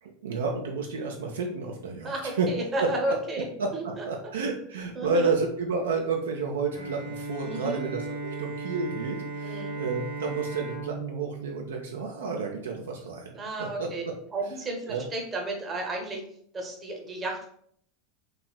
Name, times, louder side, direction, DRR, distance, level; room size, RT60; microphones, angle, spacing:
voice 1, 0.0-2.5 2.8-2.9 3.6-14.1 14.9-15.0, right 4 dB, 65° right, 1 dB, 0.3 m, -31 dB
voice 2, 2.0-3.4 3.7-4.1 4.9-5.3 7.4-7.8 9.4-9.7 13.3-14.0 14.3-16.2 16.5-17.5, right 2 dB, 25° right, 1 dB, 0.7 m, -32 dB
Bowed string instrument, 6.7-12.6, right 4 dB, 90° left, 0.7 m, -37 dB
3.1 x 2.8 x 2.3 m, 0.66 s
figure-of-eight pair, 80°, 0 cm